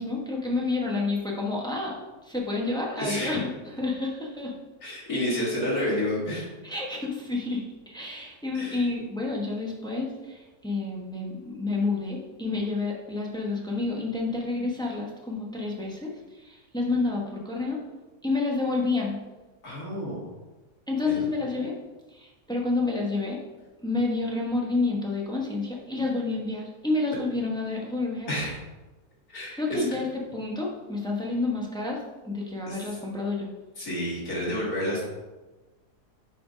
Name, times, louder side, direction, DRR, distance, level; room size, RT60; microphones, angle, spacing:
voice 1, 0.0-2.0 2.2-4.5 6.6-17.8 18.2-19.1 20.9-21.7 22.1-23.4 23.8-28.3 29.5-33.5, left 3 dB, 5° left, -2 dB, 0.8 m, -29 dB
voice 2, 3.0-3.4 4.8-6.5 8.5-8.8 19.6-20.2 21.1-21.2 28.3-28.6 29.3-29.8 32.7-32.8 33.8-35.0, left 1 dB, 60° left, -5 dB, 2.3 m, -30 dB
6.6 x 4.4 x 5.0 m, 1.2 s
omnidirectional pair, 1.8 m